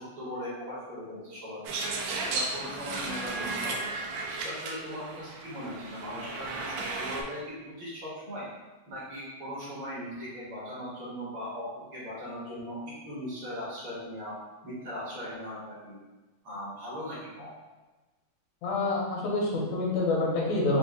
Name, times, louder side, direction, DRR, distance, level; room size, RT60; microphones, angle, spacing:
voice 1, 0.0-1.9 2.3-4.1 4.4-8.5 8.8-12.8 13.1-14.4 14.6-16.0 16.4-17.5, equal, 50° right, -9 dB, 1.8 m, -39 dB
sound 1, 1.6-7.2, right 3 dB, 85° right, 1.5 m, -34 dB
voice 2, 18.6-20.8, left 2 dB, 75° left, -3 dB, 2.0 m, -27 dB
5.1 x 2.4 x 3.6 m, 1.2 s
omnidirectional pair, 3.6 m